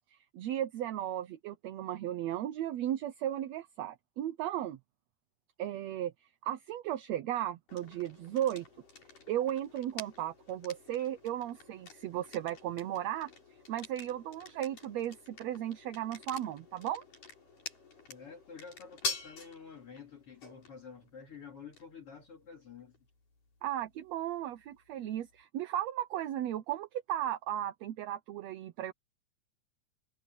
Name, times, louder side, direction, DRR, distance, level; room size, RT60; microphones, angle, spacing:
voice 1, 0.1-4.8 5.6-6.1 6.4-8.7 9.3-13.3 13.7-17.0 23.6-28.9, right 12 dB, 70° right, 1.8 m, -35 dB
sound 1, 7.7-25.4, left 4 dB, 75° left, 9.0 m, -47 dB
voice 2, 18.1-23.0, left 6 dB, 45° left, 3.0 m, -50 dB
omnidirectional pair, 3.8 m